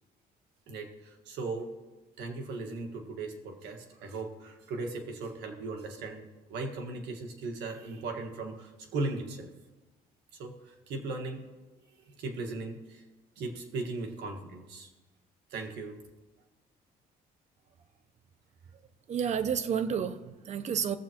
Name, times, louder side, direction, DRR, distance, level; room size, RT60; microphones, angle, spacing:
voice 1, 0.7-1.7 2.2-9.5 10.4-11.5 12.1-13.0 13.4-14.9 15.5-16.0, right 3 dB, 85° right, 4 dB, 1.6 m, -38 dB
voice 2, 19.1-21.0, right 7 dB, 40° right, 12 dB, 0.7 m, -30 dB
18.0 x 7.3 x 2.9 m, 1.1 s
cardioid pair, 110°, 17 cm